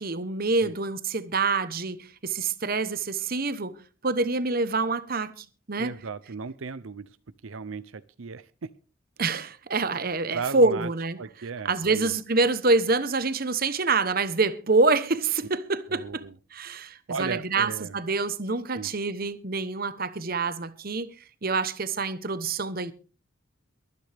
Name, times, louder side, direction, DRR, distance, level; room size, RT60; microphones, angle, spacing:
voice 1, 0.0-3.7 4.0-6.0 9.2-11.2 11.6-16.2 16.5-21.1 21.4-22.9, right 3 dB, 45° right, 1.0 m, -26 dB
voice 2, 5.8-7.2 7.4-8.7 10.3-10.9 11.2-12.2 15.9-16.3 17.1-18.0 18.7-18.9, right 5 dB, 80° right, 0.6 m, -36 dB
23.5 x 9.4 x 3.5 m
head